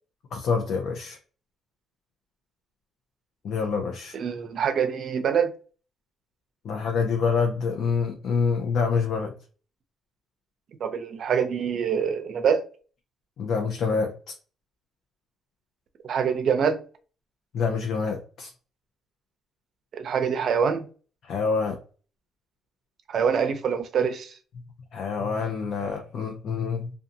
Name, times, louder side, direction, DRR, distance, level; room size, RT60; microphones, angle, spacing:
voice 1, 0.3-1.2 3.4-4.1 6.6-9.3 13.4-14.1 17.5-18.5 21.3-21.8 24.9-26.9, left 5 dB, 70° left, 0.6 m, -26 dB
voice 2, 4.1-5.5 10.8-12.6 16.0-16.8 19.9-20.9 23.1-24.3, right 7 dB, 60° right, 0.5 m, -25 dB
2.5 x 2.3 x 2.6 m
cardioid pair, 90°, 0 cm